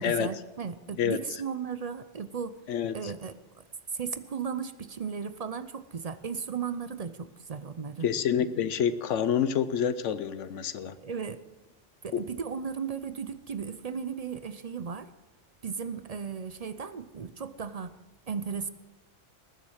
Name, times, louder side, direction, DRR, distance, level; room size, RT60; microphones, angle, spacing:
voice 1, 0.0-2.5 2.9-3.3 3.9-8.1 11.0-11.4 12.0-15.1 15.6-18.0 18.3-18.7, right 6 dB, 45° right, 12 dB, 0.5 m, -35 dB
voice 2, 2.7-3.1 8.0-11.0 12.1-12.2, left 8 dB, 80° left, 13 dB, 1.0 m, -28 dB
19.5 x 7.3 x 6.4 m, 1.1 s
omnidirectional pair, 1.2 m